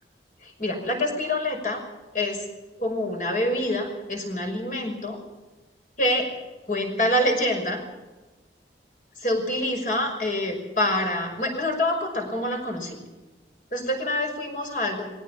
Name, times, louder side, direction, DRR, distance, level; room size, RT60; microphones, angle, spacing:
voice 1, 0.4-1.8 2.1-2.4 2.8-5.2 6.0-6.3 6.7-7.8 9.2-13.0 13.7-15.0, left 1 dB, 45° left, 3 dB, 5.8 m, -26 dB
20.5 x 17.5 x 7.4 m, 1.2 s
head